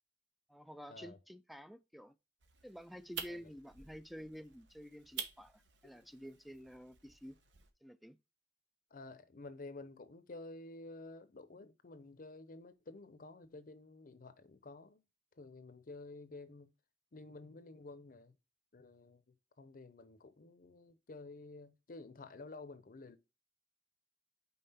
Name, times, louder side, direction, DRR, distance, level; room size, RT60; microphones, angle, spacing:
voice 1, 0.5-2.2 2.6-7.4 7.8-8.2, equal, ahead, 0.4 m, -51 dB
sound 1, 2.4-7.7, right 7 dB, 75° right, 1.0 m, -49 dB
voice 2, 8.9-15.0 15.4-16.7 17.1-18.3 18.7-19.2 19.6-23.2, left 2 dB, 50° left, 0.7 m, -51 dB
5.6 x 4.2 x 4.2 m
head